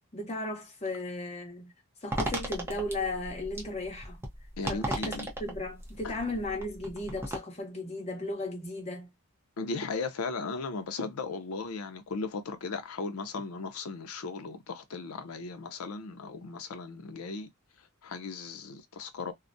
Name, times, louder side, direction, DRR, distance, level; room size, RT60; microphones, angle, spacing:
voice 1, 0.1-1.7 2.0-4.2 4.7-9.1, left 2 dB, 30° left, 0.9 m, -36 dB
sound 1, 2.1-7.4, right 1 dB, 10° right, 0.6 m, -36 dB
voice 2, 4.6-5.3 6.0-6.1 9.6-17.5 18.0-19.3, left 4 dB, 80° left, 0.5 m, -36 dB
2.3 x 2.1 x 2.5 m
head